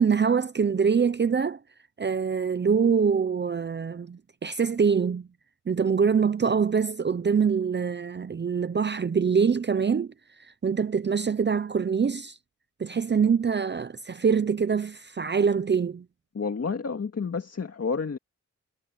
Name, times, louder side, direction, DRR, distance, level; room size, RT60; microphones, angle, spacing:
voice 1, 0.0-1.6 2.0-5.3 5.7-12.4 12.8-16.0, right 6 dB, 35° right, 0.7 m, -24 dB
voice 2, 16.3-18.2, left 5 dB, 50° left, 2.1 m, -30 dB
wide cardioid pair, 85°, 31 cm